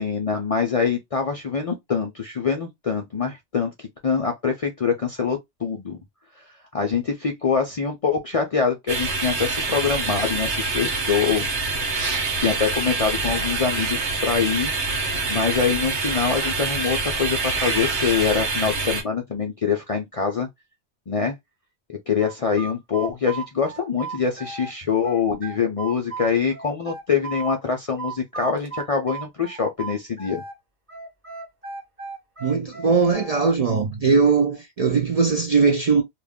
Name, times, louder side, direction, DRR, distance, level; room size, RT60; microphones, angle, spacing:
voice 1, 0.0-6.0 6.4-6.5 6.7-11.4 12.4-15.0 15.3-20.5 21.1-21.3 22.1-30.4, left 6 dB, 55° left, 0.4 m, -24 dB
sound 1, 8.9-19.0, right 3 dB, 80° right, 1.2 m, -26 dB
sound 2, 22.2-24.7 25.0-27.6 28.0-30.6 30.9-33.5, right 4 dB, 10° right, 1.0 m, -35 dB
voice 2, 32.4-36.0, right 5 dB, 55° right, 0.4 m, -20 dB
2.5 x 2.2 x 3.4 m
omnidirectional pair, 1.1 m